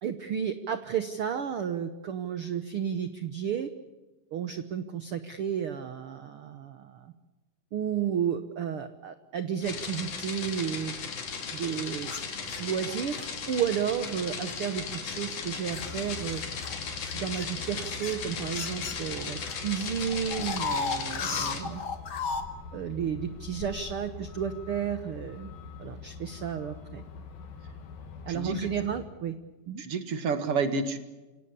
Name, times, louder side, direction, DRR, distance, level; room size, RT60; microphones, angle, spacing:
voice 1, 0.0-3.7 4.3-7.1 7.7-10.9 11.5-12.1 12.6-16.4 17.1-21.8 22.7-25.5 25.8-27.0 28.2-29.3 29.7-29.8, right 8 dB, 80° right, 10 dB, 1.2 m, -32 dB
sound 1, 9.6-21.6, left 5 dB, 60° left, 4.0 m, -37 dB
sound 2, 12.0-13.3 14.0-14.3 14.9-19.5 19.8-22.4, left 5 dB, 40° left, 1.8 m, -36 dB
Truck, 15.7-29.1, left 5 dB, 85° left, 4.3 m, -44 dB
voice 2, 29.8-31.0, right 4 dB, 45° right, 9 dB, 2.6 m, -29 dB
27.0 x 18.0 x 8.3 m, 1.2 s
omnidirectional pair, 4.1 m